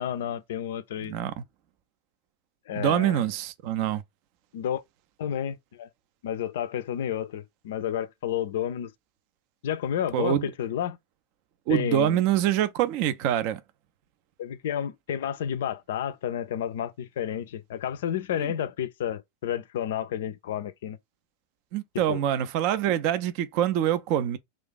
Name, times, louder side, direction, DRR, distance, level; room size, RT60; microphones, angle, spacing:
voice 1, 0.0-1.1 2.7-3.2 4.5-4.8 5.2-5.9 6.2-8.9 9.6-11.0 11.7-12.2 14.4-21.0 22.1-22.2, left 10 dB, 55° left, 0.4 m, -31 dB
voice 2, 1.0-1.4 2.8-4.0 10.1-10.5 11.7-13.6 18.4-18.5 21.7-24.4, right 11 dB, 45° right, 0.4 m, -25 dB
2.4 x 2.4 x 3.8 m
figure-of-eight pair, 90°, 0 cm